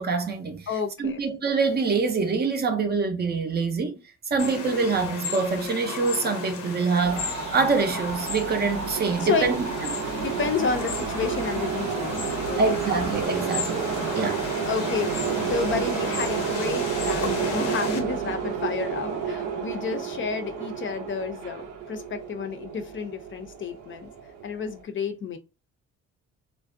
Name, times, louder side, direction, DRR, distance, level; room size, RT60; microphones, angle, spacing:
voice 1, 0.0-0.7 1.0-4.0 4.3-9.6 9.9-10.0 12.6-13.8 14.2-14.5, right 4 dB, 35° right, 0.5 m, -25 dB
voice 2, 0.7-1.2 9.2-9.5 10.1-12.1 12.4-13.0 14.4-24.1 24.4-25.4, left 5 dB, 40° left, 0.4 m, -31 dB
sound 1, 4.4-18.0, left 6 dB, 85° left, 0.7 m, -35 dB
sound 2, 7.0-24.7, right 6 dB, 90° right, 0.6 m, -30 dB
2.5 x 2.1 x 2.4 m
cardioid pair, 90°, 30 cm